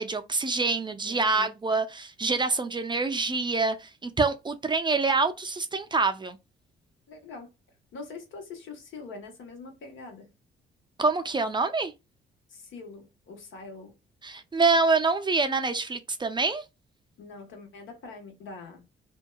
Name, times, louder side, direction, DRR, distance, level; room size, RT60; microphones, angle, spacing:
voice 1, 0.0-6.4 11.0-11.9 14.2-16.6, right 3 dB, 25° right, 0.4 m, -26 dB
voice 2, 0.9-1.5 7.1-7.5 7.9-10.3 12.5-13.9 17.2-18.8, left 4 dB, 75° left, 1.2 m, -44 dB
2.7 x 2.2 x 2.2 m
cardioid pair, 90°, 20 cm